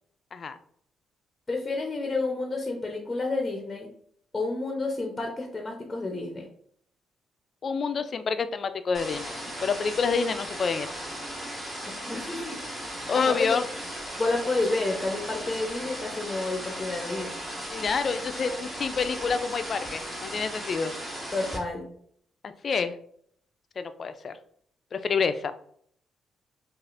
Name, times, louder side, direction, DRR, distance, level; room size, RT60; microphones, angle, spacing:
voice 1, 1.5-3.9 4.3-6.5 11.9-12.6 12.9-13.5 14.2-17.3 21.3-21.9, left 2 dB, 20° left, 1 dB, 0.7 m, -30 dB
voice 2, 7.6-9.3 9.6-10.9 13.1-13.6 17.7-20.9 22.4-23.0 23.8-24.4 24.9-25.5, left 5 dB, 45° left, 10 dB, 0.4 m, -28 dB
sound 1, 8.9-21.6, equal, 20° right, 1.4 m, -37 dB
4.8 x 2.4 x 2.5 m, 0.64 s
cardioid pair, 90°, 0 cm